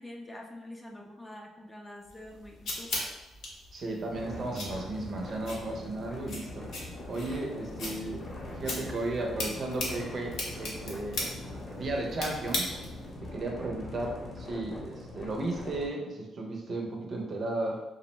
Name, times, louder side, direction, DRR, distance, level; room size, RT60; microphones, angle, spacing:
voice 1, 0.0-2.9, left 1 dB, 10° left, 1 dB, 0.4 m, -45 dB
sound 1, 2.1-13.1, left 2 dB, 75° left, 0.7 m, -39 dB
voice 2, 3.7-6.7 7.1-8.2 8.5-10.3 10.6-11.3 11.8-12.8 13.2-17.8, right 2 dB, 50° right, 0 dB, 0.5 m, -34 dB
sound 2, 4.1-15.9, left 1 dB, 35° left, 0.8 m, -42 dB
2.5 x 2.0 x 3.0 m, 1.0 s
cardioid pair, 90°, 0 cm